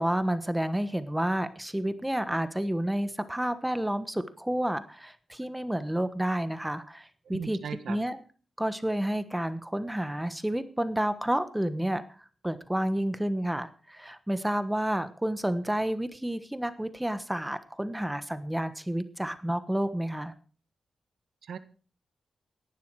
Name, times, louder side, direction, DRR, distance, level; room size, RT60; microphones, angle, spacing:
voice 1, 0.0-7.6 7.9-8.2 8.6-12.0 12.4-20.3, right 1 dB, 5° right, 12 dB, 1.2 m, -30 dB
voice 2, 7.2-8.0 21.4-21.6, right 7 dB, 80° right, 11 dB, 1.3 m, -37 dB
17.5 x 11.5 x 4.8 m, 0.38 s
wide cardioid pair, 105°, 0 cm